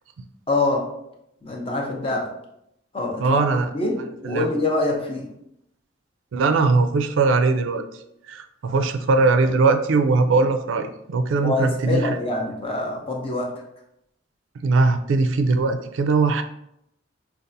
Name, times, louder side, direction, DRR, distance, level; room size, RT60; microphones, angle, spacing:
voice 1, 0.5-0.9 1.4-2.3 2.9-3.4 3.7-5.3 11.4-13.5, left 2 dB, 30° left, 0 dB, 0.6 m, -25 dB
voice 2, 3.2-3.7 4.2-4.5 6.3-7.8 8.3-12.2 14.6-16.4, right 3 dB, 80° right, 8 dB, 0.4 m, -20 dB
5.3 x 2.4 x 2.6 m, 0.79 s
head